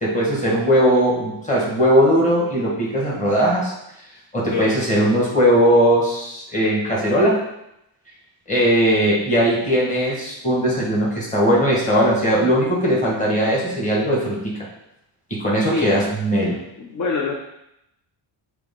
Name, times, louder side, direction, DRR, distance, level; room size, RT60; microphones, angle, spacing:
voice 1, 0.0-3.7 4.3-7.4 8.5-14.5 15.4-16.6, equal, 15° left, -5 dB, 1.6 m, -19 dB
voice 2, 16.8-17.4, left 4 dB, 40° left, -1 dB, 0.7 m, -24 dB
6.7 x 3.6 x 3.8 m, 0.84 s
wide cardioid pair, 175°, 47 cm